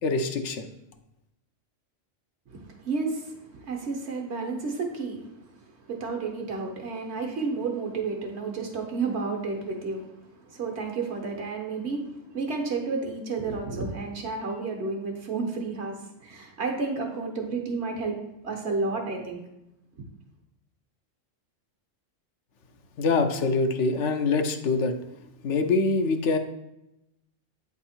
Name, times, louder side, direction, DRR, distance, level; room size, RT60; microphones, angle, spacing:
voice 1, 0.0-0.7 23.0-24.9 25.4-26.4, left 3 dB, 70° left, 6 dB, 0.9 m, -24 dB
voice 2, 2.5-19.4, right 4 dB, 60° right, 2 dB, 1.3 m, -31 dB
8.4 x 3.5 x 4.3 m, 0.89 s
omnidirectional pair, 1.3 m